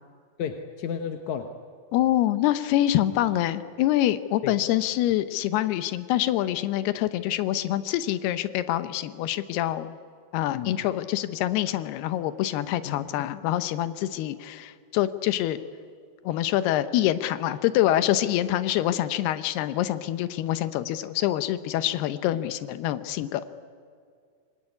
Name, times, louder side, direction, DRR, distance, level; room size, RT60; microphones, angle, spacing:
voice 1, 0.4-1.6 4.4-4.5 10.5-10.8 12.9-13.2, left 8 dB, 65° left, 6 dB, 2.0 m, -33 dB
voice 2, 1.9-9.9 10.3-15.6 16.2-23.5, left 13 dB, 85° left, 12 dB, 2.9 m, -25 dB
26.0 x 22.0 x 9.7 m, 2.2 s
omnidirectional pair, 4.5 m